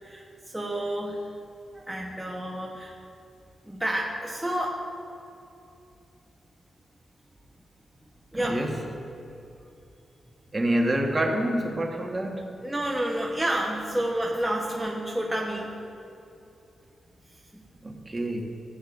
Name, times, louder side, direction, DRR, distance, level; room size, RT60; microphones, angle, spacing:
voice 1, 0.0-1.2 1.7-3.0 3.6-4.8 8.3-8.7 12.6-15.8 17.5-17.6, right 1 dB, 10° right, -2 dB, 1.0 m, -30 dB
voice 2, 8.3-8.8 10.5-12.4 17.8-18.4, right 1 dB, 25° right, 2 dB, 1.3 m, -27 dB
14.5 x 9.2 x 2.5 m, 2.7 s
cardioid pair, 70°, 0 cm